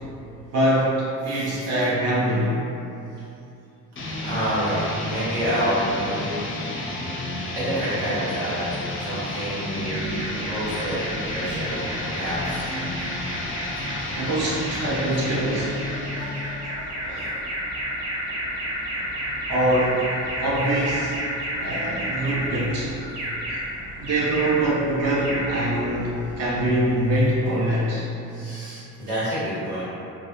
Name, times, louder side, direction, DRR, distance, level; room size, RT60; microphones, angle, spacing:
voice 1, 0.5-0.9 1.2-2.6 14.2-15.7 17.0-17.3 19.5-20.0 20.4-21.2 21.6-22.9 24.0-28.1, right 1 dB, 35° right, -6 dB, 0.5 m, -23 dB
voice 2, 1.3-1.8 4.2-6.5 7.5-8.7 9.0-12.8 27.6-27.8 28.3-29.8, equal, 75° right, -11 dB, 1.1 m, -28 dB
sound 1, 4.0-16.8, left 1 dB, 25° left, 0.5 m, -31 dB
Alarm, 9.8-27.4, equal, 55° right, 1.0 m, -32 dB
2.2 x 2.2 x 2.9 m, 2.8 s
figure-of-eight pair, 40°, 50 cm